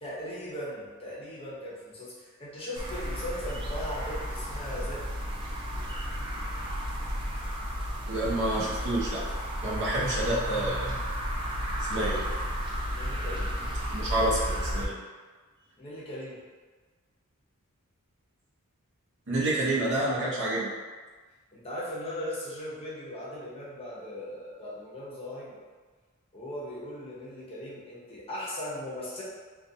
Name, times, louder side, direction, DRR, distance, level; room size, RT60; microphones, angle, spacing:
voice 1, 0.0-5.0 12.9-13.6 15.8-16.4 21.5-25.6 26.3-29.2, left 1 dB, 25° left, -7 dB, 0.7 m, -38 dB
sound 1, 2.8-14.9, equal, 20° right, 0.3 m, -33 dB
voice 2, 8.1-9.2 9.6-11.0 11.9-12.2 13.9-14.9 19.3-20.7, right 1 dB, 55° right, -6 dB, 0.7 m, -28 dB
2.5 x 2.3 x 2.6 m, 1.4 s
head